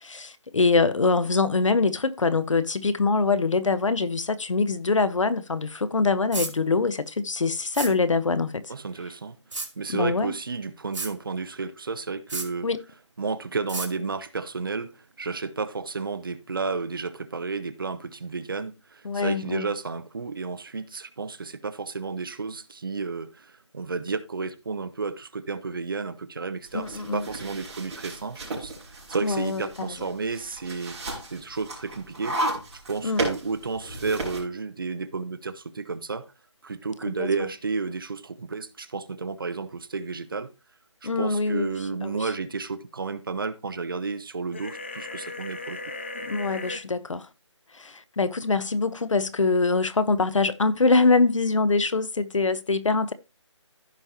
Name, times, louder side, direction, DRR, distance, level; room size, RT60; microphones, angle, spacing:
voice 1, 0.0-8.7 9.9-10.3 12.6-12.8 19.0-19.7 26.7-27.2 29.2-29.6 33.0-33.2 37.1-37.3 41.0-42.2 46.2-47.3 47.8-53.1, left 3 dB, 80° left, 1.0 m, -24 dB
sound 1, 6.3-6.5 7.7-7.9 9.5-9.7 10.9-11.1 12.3-12.5 13.7-13.9, right 3 dB, 75° right, 2.5 m, -31 dB
voice 2, 8.7-9.4 9.8-12.7 13.2-28.7 29.1-32.4 32.7-36.3 36.6-40.5 41.0-45.8, right 4 dB, 45° right, 0.8 m, -32 dB
sound 2, 26.7-34.4, right 2 dB, 15° right, 4.7 m, -34 dB
sound 3, 44.5-46.8, left 2 dB, 25° left, 0.5 m, -36 dB
15.5 x 5.2 x 2.9 m
hypercardioid pair, 175°, 16 cm